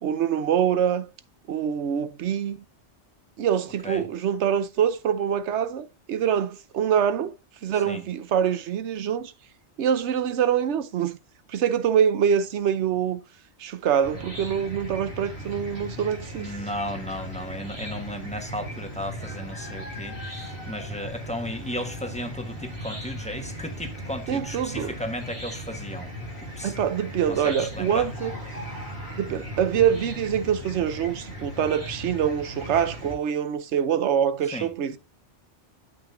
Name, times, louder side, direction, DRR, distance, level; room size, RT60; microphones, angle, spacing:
voice 1, 0.0-1.1 1.5-2.6 3.4-7.3 7.6-9.3 9.8-11.2 11.5-13.2 13.6-16.5 24.3-25.0 26.6-28.3 29.2-35.0, right 8 dB, 75° right, 1.0 m, -25 dB
Chicken rooster / Cricket, 14.0-33.1, equal, 60° right, 5.6 m, -37 dB
voice 2, 16.4-26.1 26.6-26.7 27.3-28.1 34.5-34.7, equal, 5° left, 1.2 m, -34 dB
8.7 x 8.0 x 2.6 m
omnidirectional pair, 1.2 m